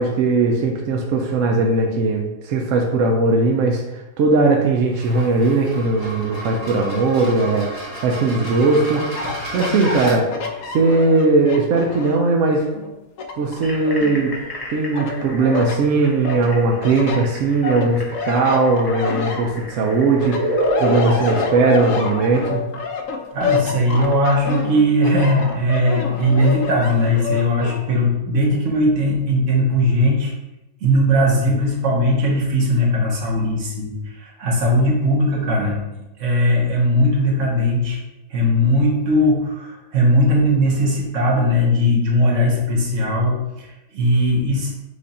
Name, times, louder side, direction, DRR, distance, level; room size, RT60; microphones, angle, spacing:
voice 1, 0.0-7.7 8.0-9.0 9.5-10.3 10.7-12.7 13.4-14.3 14.7-22.6, right 3 dB, 70° right, 1 dB, 0.7 m, -19 dB
sound 1, 4.9-10.2, right 1 dB, 15° right, 1.0 m, -33 dB
sound 2, 8.9-12.3 12.7-14.5 14.9-15.8 16.2-19.9 20.2-27.8, left 5 dB, 70° left, 0.7 m, -28 dB
sound 3, 13.6-21.8, left 1 dB, 25° left, 0.4 m, -28 dB
voice 2, 23.3-30.3 30.8-35.8 36.2-38.0 38.3-44.7, equal, 55° right, -2 dB, 1.1 m, -18 dB
4.9 x 2.5 x 4.1 m, 0.99 s
omnidirectional pair, 1.8 m